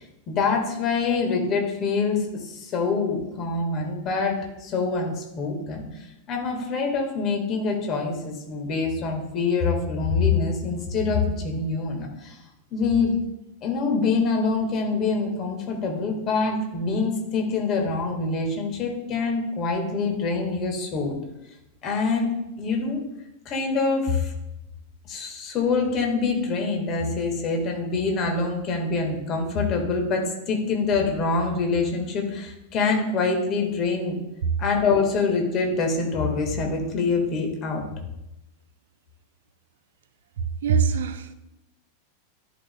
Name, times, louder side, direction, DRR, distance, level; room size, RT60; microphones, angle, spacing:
voice 1, 0.3-12.4 12.7-13.1 13.6-21.2 21.8-23.0 23.4-24.3 25.0-34.2 34.6-37.9, left 4 dB, 35° left, 1.6 m, -25 dB
voice 2, 40.4-41.3, right 6 dB, 60° right, 0.6 m, -23 dB
10.5 x 5.3 x 2.2 m
figure-of-eight pair, 90°, 0 cm